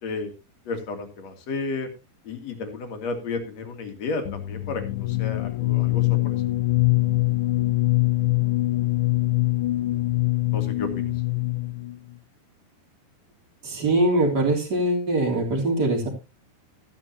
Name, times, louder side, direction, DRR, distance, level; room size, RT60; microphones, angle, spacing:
voice 1, 0.7-1.9 2.2-6.4 10.5-11.1, left 3 dB, 50° left, 6 dB, 2.5 m, -32 dB
sound 1, 4.3-11.9, left 19 dB, 85° left, 3.2 m, -23 dB
voice 2, 13.6-16.1, right 2 dB, 25° right, 0 dB, 3.4 m, -22 dB
15.0 x 11.0 x 2.8 m, 0.26 s
omnidirectional pair, 4.9 m